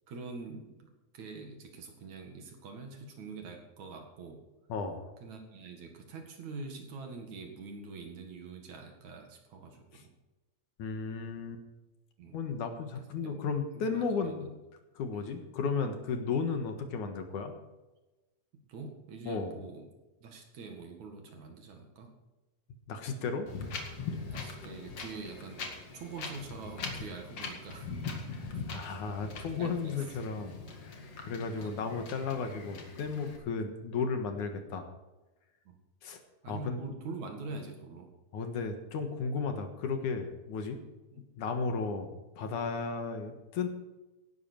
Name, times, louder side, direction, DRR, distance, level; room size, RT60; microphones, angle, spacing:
voice 1, 0.1-4.4 5.2-10.1 12.2-12.4 13.0-13.4 13.7-14.5 15.1-15.2 18.7-19.9 20.2-22.1 24.3-27.9 29.6-30.0 31.6-31.7 35.6-35.8 36.4-38.1 41.1-41.2, right 3 dB, 60° right, 3 dB, 3.2 m, -45 dB
voice 2, 4.7-5.1 9.9-10.0 10.8-11.6 12.3-14.5 15.0-17.6 19.3-19.5 22.9-23.5 28.3-34.9 36.0-36.2 36.5-36.8 38.3-40.8 41.4-43.7, left 5 dB, 65° left, 6 dB, 2.8 m, -34 dB
Wind, 23.5-33.4, left 4 dB, 45° left, 2.7 m, -42 dB
16.5 x 12.5 x 4.6 m, 1.1 s
omnidirectional pair, 3.9 m